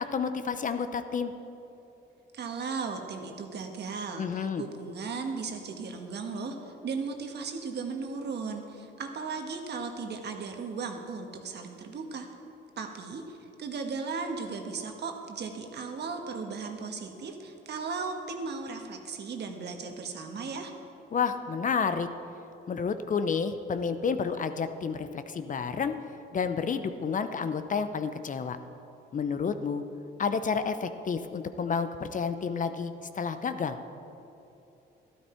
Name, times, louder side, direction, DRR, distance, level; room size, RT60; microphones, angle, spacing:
voice 1, 0.0-1.3 4.2-4.6 21.1-22.1 22.7-26.0 26.3-28.6 29.1-29.8 30.2-33.8, left 6 dB, 40° left, 10 dB, 0.7 m, -30 dB
voice 2, 2.3-12.3 12.8-20.7, right 4 dB, 60° right, 4 dB, 1.4 m, -36 dB
12.5 x 12.5 x 4.5 m, 2.9 s
cardioid pair, 90°, 20 cm